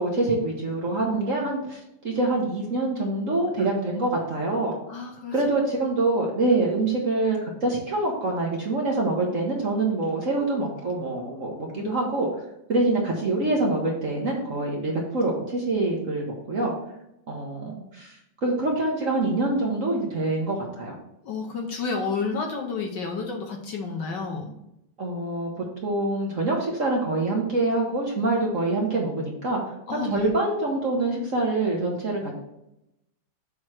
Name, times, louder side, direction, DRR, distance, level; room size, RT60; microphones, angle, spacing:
voice 1, 0.0-4.7 5.3-12.3 12.7-16.7 17.3-18.1 18.4-20.9 25.0-29.6 29.9-32.3, right 2 dB, 45° right, -2 dB, 1.2 m, -25 dB
voice 2, 4.9-5.3 11.7-11.9 21.2-24.5 29.9-30.3, left 4 dB, 60° left, 2 dB, 1.3 m, -30 dB
7.5 x 3.1 x 6.2 m, 0.84 s
omnidirectional pair, 2.4 m